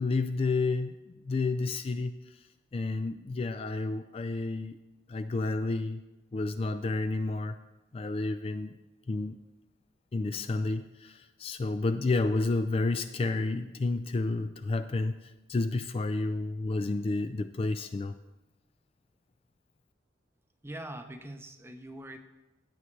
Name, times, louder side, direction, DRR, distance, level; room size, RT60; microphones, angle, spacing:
voice 1, 0.0-2.4 2.7-4.8 5.1-6.0 6.3-7.6 7.9-8.8 9.1-9.4 10.1-18.2, left 3 dB, 30° left, 9 dB, 0.3 m, -30 dB
voice 2, 20.6-22.2, right 1 dB, 15° right, 6 dB, 0.7 m, -42 dB
15.5 x 8.3 x 3.2 m, 1.0 s
head